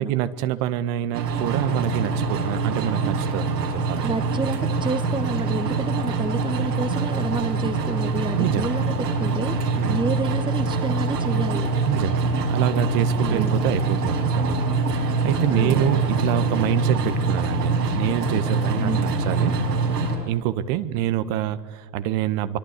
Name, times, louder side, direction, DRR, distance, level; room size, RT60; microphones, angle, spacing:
voice 1, 0.0-4.1 8.3-8.7 9.8-10.0 11.9-14.6 14.9-19.5 20.3-22.6, right 12 dB, 50° right, 12 dB, 1.5 m, -26 dB
sound 1, 1.1-20.2, right 3 dB, 80° right, 5.9 m, -24 dB
voice 2, 4.0-8.9 9.2-11.7 13.3-13.5 15.5-15.9 18.8-19.1, right 4 dB, 10° right, 11 dB, 1.1 m, -29 dB
24.5 x 24.0 x 8.2 m, 1.3 s
hypercardioid pair, 85°, 48 cm